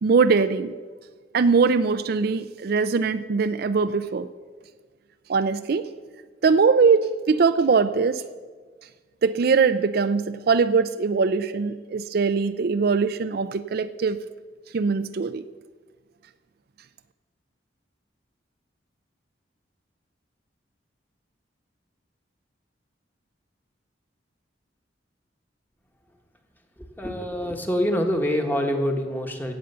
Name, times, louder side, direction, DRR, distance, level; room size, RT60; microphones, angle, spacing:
voice 1, 0.0-0.7 1.3-4.3 5.3-5.9 6.4-8.2 9.2-14.2 14.7-15.4, right 5 dB, 55° right, 12 dB, 0.4 m, -21 dB
voice 2, 27.0-29.5, equal, 10° left, 3 dB, 1.4 m, -25 dB
16.5 x 8.1 x 6.8 m, 1.5 s
head